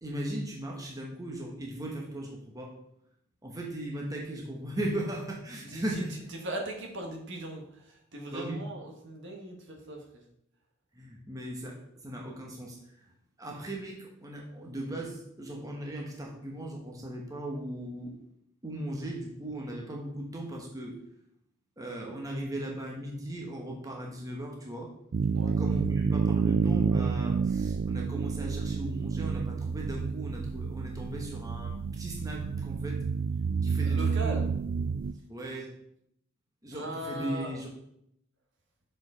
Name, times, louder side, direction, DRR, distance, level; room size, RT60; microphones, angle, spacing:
voice 1, 0.0-2.8 3.4-6.1 8.3-8.6 10.9-13.1 13.4-18.2 18.6-21.0 21.8-24.9 25.5-33.0 33.6-34.5 35.3-35.7 36.6-37.7, right 1 dB, 15° right, -1 dB, 1.1 m, -38 dB
voice 2, 5.6-6.0 6.3-10.2 25.3-25.6 33.8-34.4 36.7-37.6, right 1 dB, 60° right, 1 dB, 1.4 m, -39 dB
sound 1, 25.1-35.1, right 5 dB, 45° right, 0.3 m, -29 dB
6.3 x 4.8 x 4.9 m, 0.75 s
head